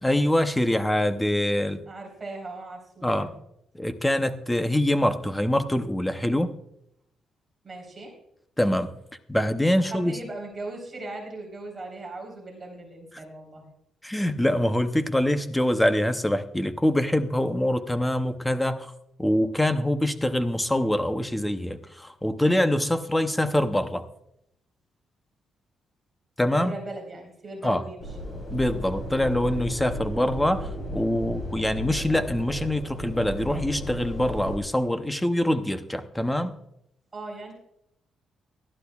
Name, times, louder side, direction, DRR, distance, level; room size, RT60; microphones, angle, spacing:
voice 1, 0.0-1.8 3.0-3.3 3.8-6.5 8.6-8.9 9.3-10.2 14.0-18.9 19.2-24.0 26.4-26.7 27.6-27.8 28.5-36.5, left 1 dB, 5° left, 9 dB, 0.7 m, -24 dB
voice 2, 1.9-3.4 7.6-8.1 9.8-13.6 26.5-28.0 37.1-37.5, right 2 dB, 20° right, -2 dB, 3.6 m, -38 dB
sound 1, 28.0-34.6, equal, 25° left, 3.8 m, -35 dB
20.0 x 12.0 x 2.3 m, 0.78 s
cardioid pair, 175°, 0 cm